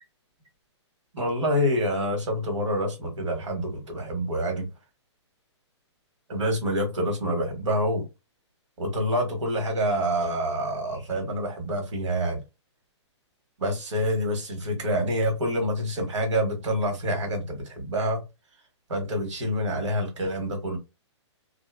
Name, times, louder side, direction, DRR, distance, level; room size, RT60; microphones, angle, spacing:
voice 1, 1.1-4.7 6.3-8.0 8.8-12.4 13.6-18.2 18.9-20.8, equal, 80° right, 1.3 m, -27 dB
2.6 x 2.3 x 2.3 m
hypercardioid pair, 145°, 15 cm